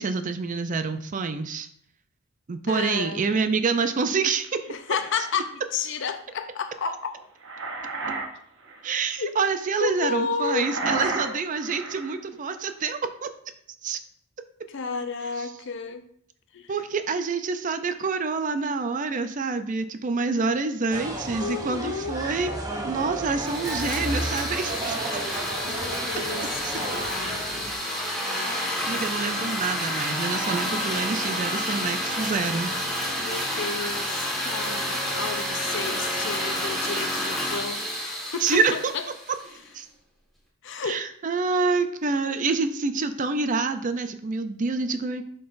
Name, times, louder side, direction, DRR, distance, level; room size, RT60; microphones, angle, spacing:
voice 1, 0.0-1.7 2.5-4.5 8.8-13.3 13.8-14.0 15.4-15.5 16.7-22.5 22.8-25.0 26.6-26.7 28.9-32.7 38.4-38.9 39.7-39.9 40.8-45.2, right 4 dB, 40° right, 9 dB, 0.4 m, -27 dB
voice 2, 2.7-3.3 4.7-7.1 9.2-9.3 9.8-10.7 11.2-11.4 14.7-16.0 16.5-16.7 21.4-22.2 25.7-27.8 33.2-37.8 38.3-38.6 38.9-39.0 40.6-41.0, left 5 dB, 60° left, 8 dB, 0.6 m, -32 dB
sound 1, 4.4-5.4 7.1-8.3 8.6-8.9 10.4-12.2, right 3 dB, 65° right, 1.0 m, -32 dB
sound 2, 20.9-27.8, right 2 dB, 20° right, 0.8 m, -33 dB
sound 3, 23.4-39.6, equal, ahead, 1.6 m, -29 dB
10.5 x 3.8 x 2.6 m, 0.66 s
head